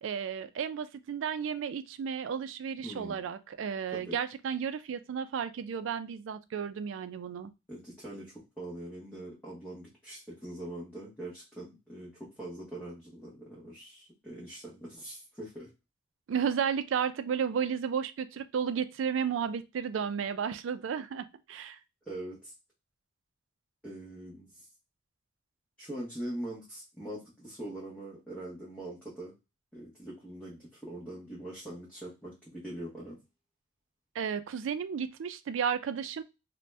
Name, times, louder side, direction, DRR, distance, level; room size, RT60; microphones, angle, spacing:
voice 1, 0.0-7.5 16.3-21.8 34.1-36.2, right 7 dB, 80° right, 12 dB, 0.3 m, -33 dB
voice 2, 2.8-3.2 4.0-4.2 7.7-8.3 8.6-12.1 12.4-15.7 22.1-22.5 23.8-24.6 25.8-29.3 29.7-33.2, right 1 dB, 5° left, -7 dB, 0.9 m, -42 dB
2.6 x 2.1 x 3.2 m, 0.26 s
head